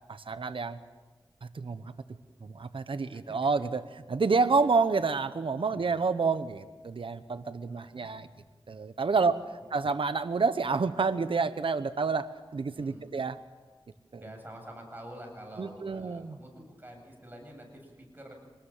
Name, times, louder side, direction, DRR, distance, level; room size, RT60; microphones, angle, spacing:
voice 1, 0.1-0.8 1.4-1.9 2.4-3.8 4.1-8.3 8.7-9.4 9.7-13.4 15.6-16.4, right 4 dB, 80° right, 11 dB, 1.1 m, -28 dB
voice 2, 3.1-3.7 5.6-6.0 7.5-8.1 9.6-9.7 12.7-13.1 14.1-18.3, right 1 dB, 20° right, 2 dB, 7.9 m, -48 dB
25.5 x 20.0 x 7.5 m, 1.3 s
wide cardioid pair, 85°, 9 cm